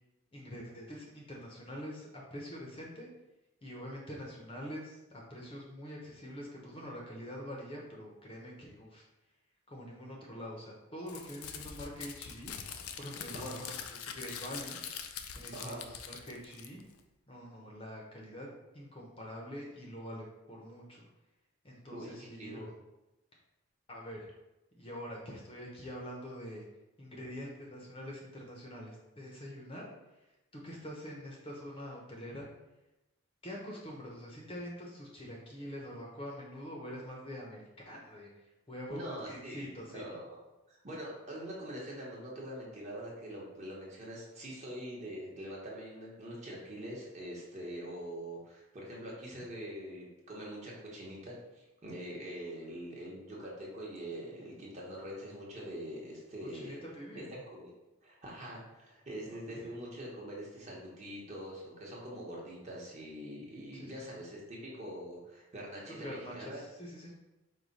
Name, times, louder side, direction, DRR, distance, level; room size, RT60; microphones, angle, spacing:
voice 1, 0.3-3.1 3.6-9.0 9.7-12.5 13.0-14.8 15.3-16.8 17.3-21.1 21.6-22.7 23.9-24.3 24.8-26.7 27.0-29.9 30.5-32.5 33.4-38.3 38.7-40.0 56.5-57.4 59.3-59.7 63.7-64.1 65.9-67.1, equal, 25° left, -2 dB, 0.6 m, -45 dB
Crumpling crinkling, 11.1-17.0, left 7 dB, 90° left, 0.4 m, -44 dB
voice 2, 15.5-15.8 21.9-22.7 38.9-40.4 40.7-56.8 57.1-57.7 58.0-66.6, equal, 35° right, -4 dB, 1.0 m, -44 dB
4.8 x 2.2 x 4.0 m, 0.98 s
head